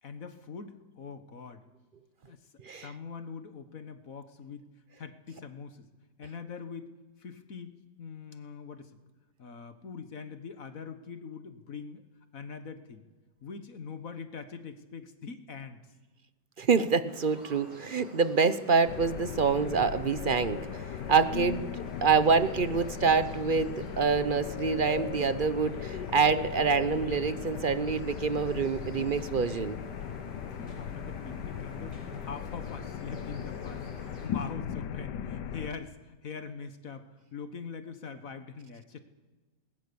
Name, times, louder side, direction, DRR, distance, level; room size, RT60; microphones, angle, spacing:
voice 1, 0.0-1.6 2.2-2.4 2.7-4.7 5.0-5.9 6.2-6.9 7.2-9.0 9.4-12.0 12.3-13.0 13.4-15.8 30.6-39.0, left 5 dB, 50° left, 9 dB, 1.7 m, -43 dB
voice 2, 16.6-20.8 21.1-21.7 22.0-29.8, right 5 dB, 45° right, 13 dB, 0.6 m, -26 dB
sound 1, 17.1-34.3, equal, 25° right, 8.2 m, -49 dB
sound 2, 18.9-35.7, left 8 dB, 75° left, 1.5 m, -38 dB
20.5 x 19.5 x 7.0 m, 1.3 s
omnidirectional pair, 1.9 m